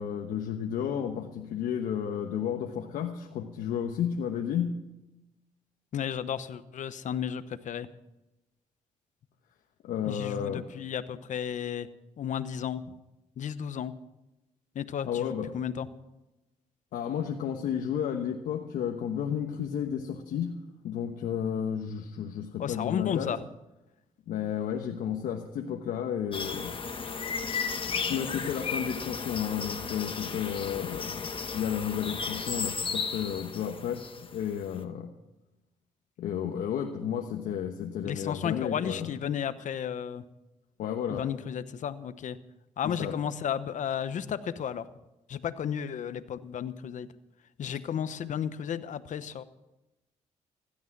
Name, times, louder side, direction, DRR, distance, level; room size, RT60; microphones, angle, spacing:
voice 1, 0.0-4.8 9.8-10.6 15.1-15.5 16.9-20.5 20.8-23.3 24.3-26.8 27.9-35.1 36.2-39.1 40.8-41.2 42.8-43.2, left 8 dB, 90° left, 3 dB, 1.1 m, -32 dB
voice 2, 5.9-7.9 10.0-11.9 12.2-12.9 13.4-13.9 14.7-15.9 22.6-23.4 38.0-40.2 41.1-42.4 42.8-44.9 45.3-47.1 47.6-49.4, left 8 dB, 65° left, 13 dB, 1.0 m, -33 dB
sound 1, 26.3-34.6, left 5 dB, 40° left, 1.3 m, -34 dB
16.0 x 12.0 x 6.0 m, 0.96 s
cardioid pair, 85°, 14 cm